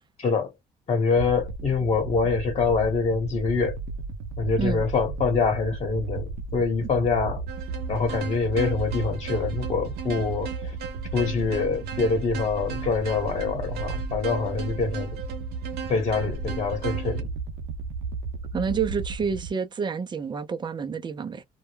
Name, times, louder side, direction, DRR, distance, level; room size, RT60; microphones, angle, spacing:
voice 1, 0.2-0.5 0.9-3.8 4.4-7.4 7.9-10.7 11.1-15.1 15.9-17.3, left 4 dB, 35° left, 1.0 m, -25 dB
sound 1, 1.1-19.5, right 4 dB, 90° right, 0.4 m, -34 dB
sound 2, 7.5-17.2, right 8 dB, 70° right, 0.8 m, -38 dB
voice 2, 18.5-21.4, right 6 dB, 25° right, 0.4 m, -28 dB
2.2 x 2.1 x 3.1 m
cardioid pair, 110°, 17 cm